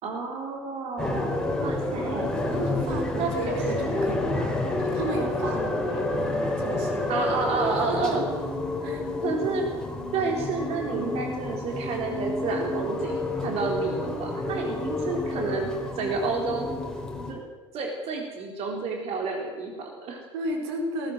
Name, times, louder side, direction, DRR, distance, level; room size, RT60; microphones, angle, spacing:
voice 1, 0.0-2.3 3.2-3.5 7.1-8.2 9.2-9.8 10.1-13.2 13.4-16.7 17.3-17.4 17.7-20.2, right 4 dB, 45° right, 2 dB, 3.7 m, -30 dB
sound 1, 1.0-17.3, left 2 dB, 5° left, 4.6 m, -29 dB
voice 2, 2.5-8.2 8.8-9.1 20.3-21.1, right 2 dB, 65° right, 3 dB, 4.3 m, -34 dB
19.0 x 17.0 x 8.0 m, 1.3 s
figure-of-eight pair, 65°, 15 cm